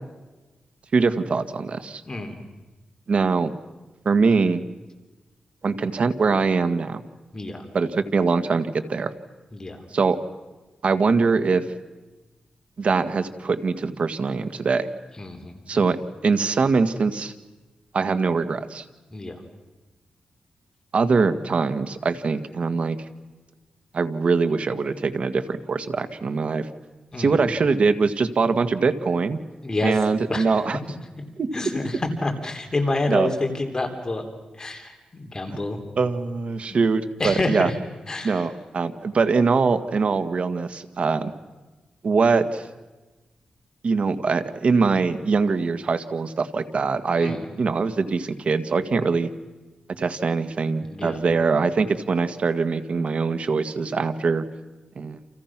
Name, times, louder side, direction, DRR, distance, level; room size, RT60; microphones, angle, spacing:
voice 1, 0.9-2.0 3.1-3.5 4.0-4.6 5.6-7.0 7.7-9.1 9.9-10.2 10.8-11.6 12.8-14.9 15.7-16.0 16.2-17.3 17.9-18.8 20.9-23.0 23.9-26.7 27.2-29.4 29.8-30.8 31.4-31.5 33.1-33.3 35.5-35.6 36.0-37.7 38.2-41.3 42.0-42.7 43.8-49.3 50.0-54.5 54.9-55.2, right 4 dB, 55° right, 9 dB, 1.7 m, -22 dB
voice 2, 2.1-2.4 7.3-7.6 9.5-9.8 15.2-15.9 19.1-19.4 27.1-27.4 29.6-30.6 31.1-31.2 31.5-34.3 34.5-35.8 36.7-36.8 37.2-37.8 38.1-38.5 47.2-47.5 50.8-51.2, left 2 dB, 25° left, 4 dB, 3.3 m, -28 dB
29.5 x 28.5 x 6.1 m, 1.2 s
cardioid pair, 95°, 2 cm